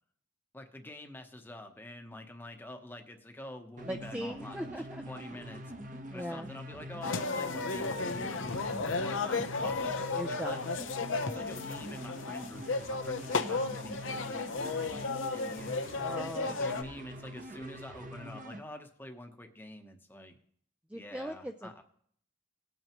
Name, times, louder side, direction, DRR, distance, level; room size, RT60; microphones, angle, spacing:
voice 1, 0.5-4.7 5.1-10.6 11.2-15.9 16.4-20.3 20.9-21.8, left 1 dB, 10° left, 5 dB, 0.9 m, -47 dB
voice 2, 3.8-5.0 6.1-6.5 10.1-10.7 16.0-16.7 20.9-21.8, equal, 5° right, 2 dB, 0.4 m, -40 dB
sound 1, 3.8-18.6, equal, 40° right, 1.0 m, -44 dB
sound 2, 7.0-16.8, left 3 dB, 80° left, 0.7 m, -34 dB
19.0 x 8.9 x 3.0 m, 0.63 s
head